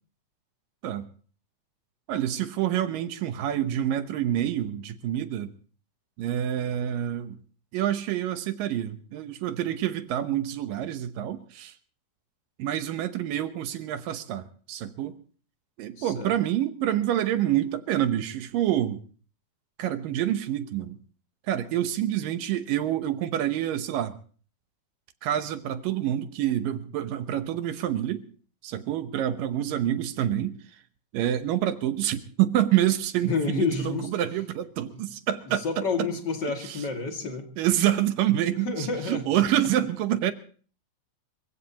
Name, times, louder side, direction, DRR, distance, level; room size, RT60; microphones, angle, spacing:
voice 1, 2.1-5.5 6.2-7.4 7.7-11.7 12.6-15.2 15.8-19.0 19.8-21.0 21.5-24.1 25.2-28.3 28.6-30.6 31.1-36.1 36.6-36.8 37.6-40.3, right 11 dB, 70° right, 10 dB, 2.5 m, -27 dB
voice 2, 15.9-16.3 33.2-34.1 34.9-35.0 35.5-37.5 38.6-39.4, left 4 dB, 35° left, 3 dB, 2.3 m, -29 dB
28.0 x 16.0 x 2.9 m, 0.42 s
omnidirectional pair, 4.3 m